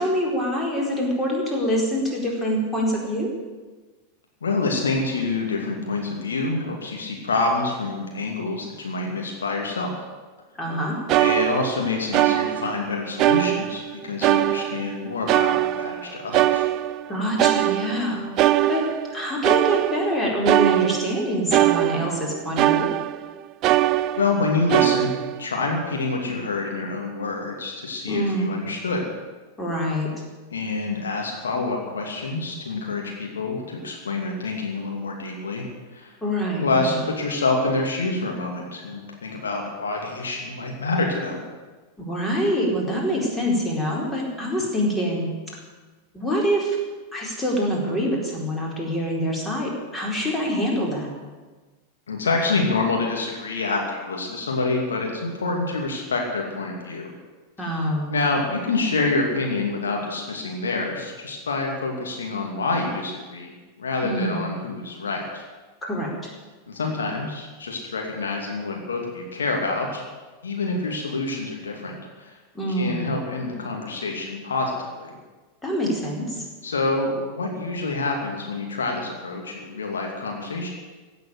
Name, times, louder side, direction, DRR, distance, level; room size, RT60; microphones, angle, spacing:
voice 1, 0.0-3.3 10.6-11.0 17.1-18.3 18.7-18.8 19.1-22.9 28.1-28.6 29.6-30.1 36.2-37.0 42.0-45.3 46.1-46.8 47.1-51.1 57.6-58.1 64.0-64.4 65.8-66.3 72.5-73.1 75.6-76.5, equal, 10° left, -2 dB, 4.4 m, -25 dB
voice 2, 4.4-10.0 11.2-16.7 24.2-29.0 30.5-35.6 35.9-36.1 36.6-41.4 52.1-57.1 57.6-63.5 63.8-65.5 66.7-70.0 70.4-72.4 72.8-75.2 76.6-80.7, left 3 dB, 70° left, 0 dB, 2.6 m, -27 dB
sound 1, 10.7-10.8 11.1-12.9 13.2-13.9 14.2-17.1 17.4-23.3 23.6-24.4 24.7-25.4, right 14 dB, 40° right, 0.4 m, -22 dB
16.0 x 8.0 x 9.8 m, 1.3 s
figure-of-eight pair, 90°, 0 cm